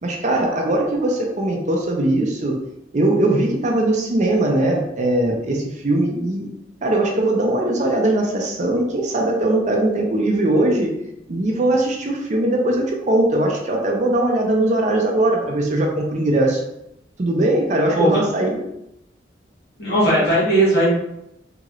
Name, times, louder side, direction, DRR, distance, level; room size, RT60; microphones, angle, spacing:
voice 1, 0.0-2.6 2.9-6.5 6.8-10.9 11.3-16.6 17.2-18.7, right 1 dB, 40° right, 1 dB, 0.5 m, -20 dB
voice 2, 19.8-20.9, right 1 dB, 60° left, -6 dB, 1.3 m, -17 dB
3.0 x 2.9 x 2.4 m, 0.82 s
head